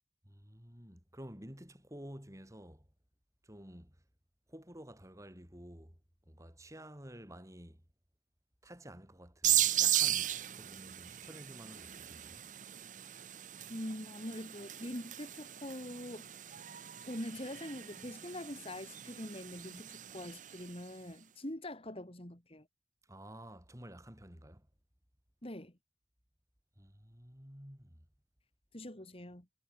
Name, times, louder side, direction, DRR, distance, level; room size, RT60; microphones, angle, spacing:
voice 1, 0.2-2.9 3.4-3.9 4.5-6.0 6.3-7.8 8.6-12.4 23.1-24.7 26.8-28.0, equal, 20° right, 6.0 m, -51 dB
sound 1, 9.4-20.8, right 12 dB, 45° right, 0.9 m, -36 dB
voice 2, 13.7-16.3 17.0-22.7 25.4-25.7 28.7-29.5, left 1 dB, 30° left, 3.1 m, -44 dB
head